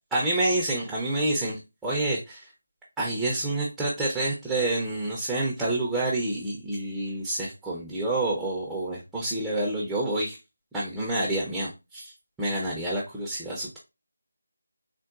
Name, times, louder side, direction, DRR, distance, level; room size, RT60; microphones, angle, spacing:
voice 1, 0.1-2.5 3.0-10.4 10.7-12.1 12.4-13.8, right 2 dB, 5° right, -6 dB, 0.5 m, -28 dB
3.8 x 2.1 x 2.3 m, 0.25 s
figure-of-eight pair, 165°, 0 cm